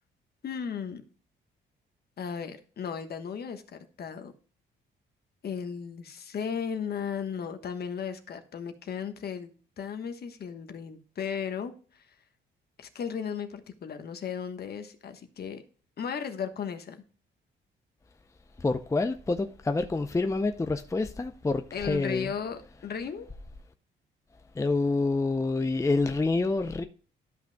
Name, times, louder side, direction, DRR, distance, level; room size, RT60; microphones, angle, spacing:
voice 1, 0.4-1.0 2.2-4.3 5.4-12.0 12.8-15.6 16.0-17.0 21.7-23.3, left 7 dB, 55° left, 1.3 m, -35 dB
voice 2, 18.6-22.3 24.6-26.8, left 3 dB, 15° left, 0.6 m, -27 dB
12.5 x 5.8 x 2.3 m
cardioid pair, 90°, 20 cm